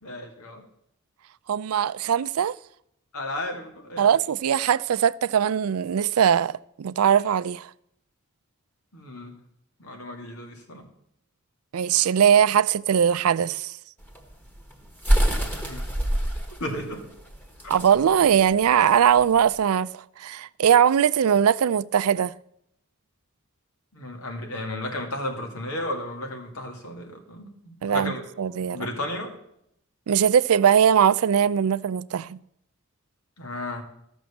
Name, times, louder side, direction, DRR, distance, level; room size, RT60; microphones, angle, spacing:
voice 1, 0.0-0.6 3.1-4.1 8.9-9.4 9.8-10.9 15.5-15.8 16.6-17.0 23.9-28.2 28.7-29.3 33.4-33.8, left 1 dB, 85° left, 2.4 m, -34 dB
voice 2, 1.5-2.5 4.0-7.7 11.7-13.7 17.7-19.9 20.2-22.3 27.8-28.9 30.1-32.4, right 8 dB, 80° right, 0.4 m, -21 dB
sound 1, 14.0-19.6, right 1 dB, 10° left, 1.4 m, -26 dB
14.0 x 6.2 x 7.1 m
head